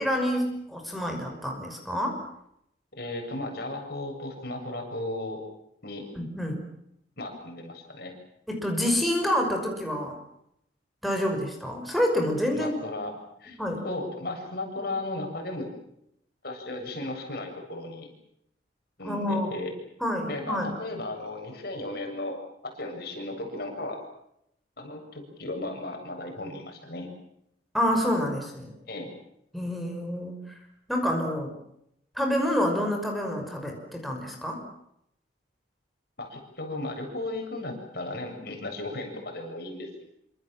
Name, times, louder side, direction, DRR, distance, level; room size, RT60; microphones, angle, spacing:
voice 1, 0.0-2.2 6.2-6.6 8.5-10.1 11.0-12.7 13.6-13.8 19.0-19.5 20.0-20.7 27.7-28.7 29.5-30.4 30.9-31.5 32.2-34.6, equal, ahead, 1 dB, 5.7 m, -27 dB
voice 2, 2.9-5.5 5.8-6.1 7.2-8.1 12.5-13.6 13.8-15.7 16.4-18.1 19.0-19.7 20.3-24.0 24.8-27.1 28.9-29.1 36.2-40.0, left 2 dB, 55° left, 3 dB, 7.7 m, -35 dB
27.0 x 26.5 x 7.5 m, 0.78 s
head